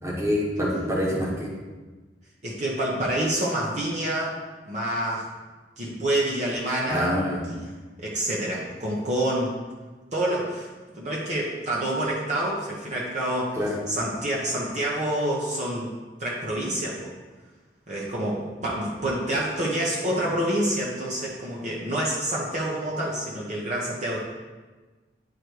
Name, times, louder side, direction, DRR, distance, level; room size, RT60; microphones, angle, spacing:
voice 1, 0.0-1.5 6.8-7.4 13.6-13.8, equal, 15° right, -4 dB, 1.4 m, -26 dB
voice 2, 2.4-4.3 4.7-5.2 5.8-7.2 7.5-7.6 8.0-9.6 10.1-10.7 10.9-13.6 13.9-15.9 16.2-17.1 17.9-24.2, right 1 dB, 40° right, -5 dB, 1.1 m, -27 dB
9.8 x 3.3 x 4.6 m, 1.3 s
head